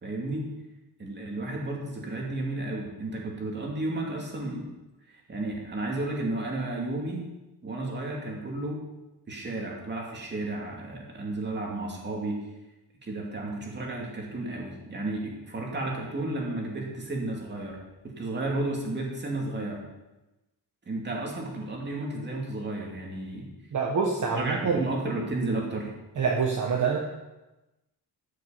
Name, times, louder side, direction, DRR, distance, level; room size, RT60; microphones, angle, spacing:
voice 1, 0.0-0.4 1.0-4.7 5.1-7.2 7.6-8.8 9.3-12.4 13.0-17.8 18.2-19.8 20.9-23.5 24.3-25.9, right 2 dB, 25° right, -2 dB, 2.5 m, -32 dB
voice 2, 23.7-24.8 26.2-27.0, right 5 dB, 45° right, -1 dB, 1.3 m, -26 dB
13.5 x 6.6 x 5.7 m, 1.0 s
wide cardioid pair, 175°, 41 cm